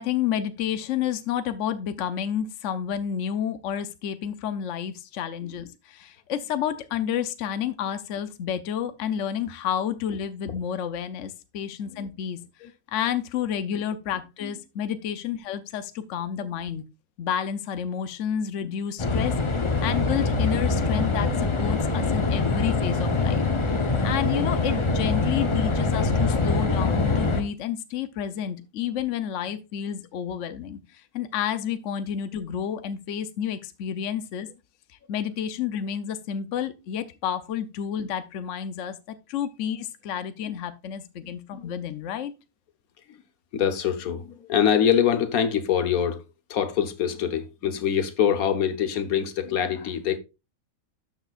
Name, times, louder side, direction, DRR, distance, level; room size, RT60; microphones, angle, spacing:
voice 1, 0.0-12.4 12.9-16.8 17.2-19.4 19.8-23.4 23.7-34.5 35.1-42.3, left 9 dB, 65° left, 1.0 m, -30 dB
sound 1, 19.0-27.4, left 3 dB, 25° left, 0.8 m, -24 dB
voice 2, 43.5-46.2 46.5-50.2, left 8 dB, 90° left, 1.4 m, -24 dB
12.0 x 7.1 x 2.4 m
omnidirectional pair, 1.5 m